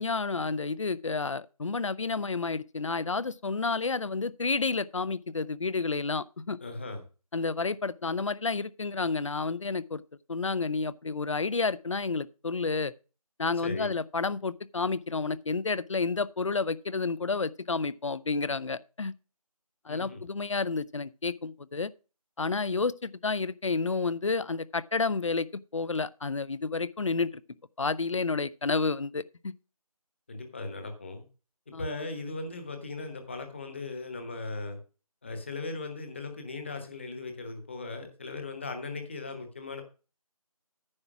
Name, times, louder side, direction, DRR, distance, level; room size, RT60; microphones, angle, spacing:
voice 1, 0.0-6.6 7.3-10.0 10.3-12.9 13.4-19.1 19.9-21.9 22.4-25.5 25.7-27.3 27.8-29.5 31.7-31.9, left 4 dB, 55° left, 0.5 m, -30 dB
voice 2, 6.6-7.0 13.6-14.0 19.9-20.2 30.3-31.2 31.7-34.8 35.2-39.8, left 3 dB, 20° left, 1.1 m, -38 dB
9.7 x 5.9 x 6.0 m
figure-of-eight pair, 170°, 19 cm